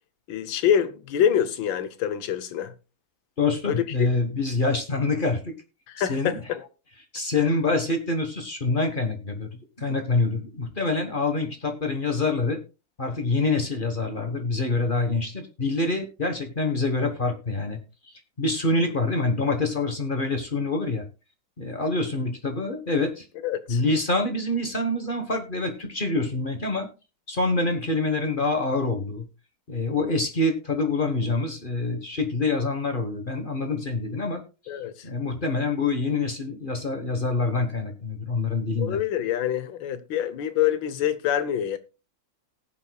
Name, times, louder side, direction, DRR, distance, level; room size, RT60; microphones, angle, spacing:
voice 1, 0.3-2.7 3.7-4.1 5.9-6.7 23.4-23.8 34.7-34.9 38.8-41.8, left 9 dB, 80° left, 1.6 m, -25 dB
voice 2, 3.4-5.5 6.0-6.4 7.1-12.6 13.0-17.8 18.0-21.0 21.6-23.3 23.7-26.9 27.3-29.3 29.7-34.4 35.0-39.0, left 3 dB, 30° left, 1.2 m, -26 dB
19.0 x 7.6 x 2.3 m
omnidirectional pair, 2.0 m